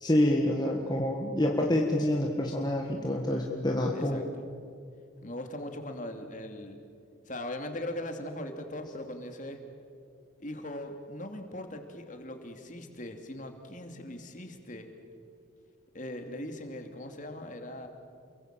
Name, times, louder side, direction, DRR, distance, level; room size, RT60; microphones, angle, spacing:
voice 1, 0.0-4.2, left 1 dB, 20° left, 0 dB, 1.7 m, -27 dB
voice 2, 3.9-4.4 5.2-6.8 7.3-9.6 10.4-14.9 15.9-17.9, left 1 dB, 40° left, 5 dB, 2.7 m, -40 dB
29.0 x 23.0 x 7.6 m, 2.4 s
head